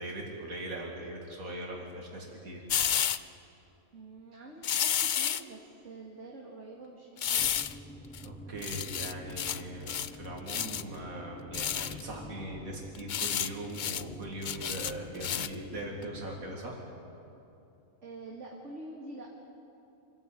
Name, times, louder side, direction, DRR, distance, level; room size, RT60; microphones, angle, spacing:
voice 1, 0.0-2.6 8.2-16.8, right 1 dB, 90° right, -1 dB, 2.8 m, -40 dB
sound 1, 2.7-3.2 4.6-5.4 7.2-7.7 8.1-8.2 8.6-9.6 9.9-10.1 10.5-10.8 11.5-12.0 12.9-13.5 13.7-14.0 14.4-15.5 16.0-16.1, left 9 dB, 60° left, 0.5 m, -30 dB
voice 2, 3.9-7.5 18.0-19.3, right 2 dB, 60° right, -2 dB, 2.5 m, -46 dB
sound 2, 7.4-16.6, left 1 dB, 5° left, 0.8 m, -47 dB
26.5 x 14.5 x 8.8 m, 2.8 s
omnidirectional pair, 1.4 m